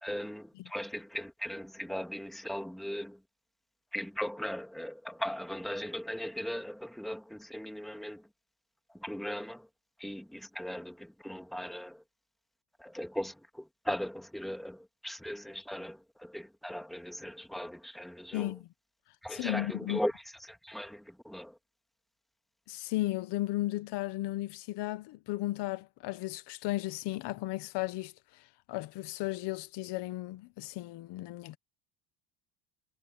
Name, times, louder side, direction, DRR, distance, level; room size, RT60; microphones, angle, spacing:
voice 1, 0.0-3.2 3.9-8.3 8.9-9.7 10.0-12.0 12.8-18.5 19.2-21.6, equal, ahead, 2.0 m, -38 dB
voice 2, 18.3-18.7 19.3-20.0 22.7-31.6, left 17 dB, 70° left, 1.4 m, -35 dB
cardioid pair, 145°, 43 cm